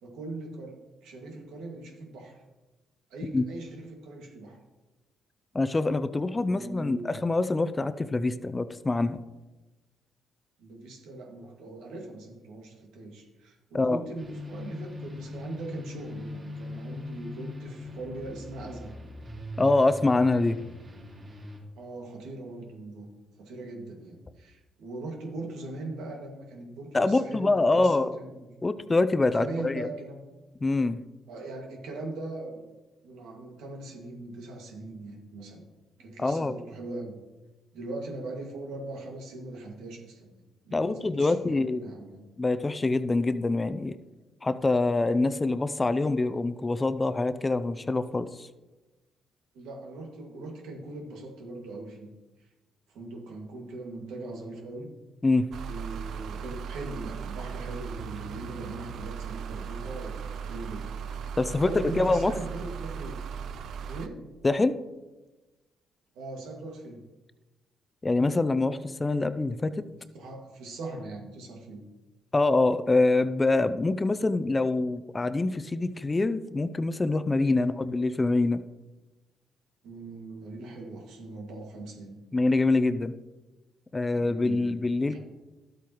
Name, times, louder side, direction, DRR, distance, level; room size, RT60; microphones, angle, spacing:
voice 1, 0.0-2.4 3.1-4.6 6.4-7.2 10.6-18.9 21.8-23.1 23.4-28.5 29.3-30.3 31.3-32.6 33.0-35.6 36.0-37.2 37.7-40.3 40.6-42.2 49.5-52.1 52.9-54.9 55.7-60.9 61.2-61.4 61.6-63.2 63.8-64.3 66.1-67.0 70.1-71.9 77.5-77.7 79.8-82.2 84.1-84.8 85.1-85.2, right 2 dB, 90° right, 0 dB, 2.1 m, -40 dB
voice 2, 5.5-9.2 13.7-14.0 19.6-20.6 26.9-28.2 28.6-29.9 30.6-31.0 36.2-36.6 40.7-41.9 42.4-44.0 44.4-48.5 55.2-55.4 61.4-62.3 64.4-64.8 68.0-69.8 72.3-78.6 82.3-83.1 83.9-85.2, left 2 dB, 20° left, 12 dB, 0.5 m, -25 dB
sound 1, 14.2-21.6, left 1 dB, 35° right, 3.7 m, -41 dB
sound 2, 55.5-64.1, right 7 dB, 70° right, 0.5 m, -37 dB
12.5 x 8.3 x 3.1 m, 1.1 s
cardioid pair, 90°, 0 cm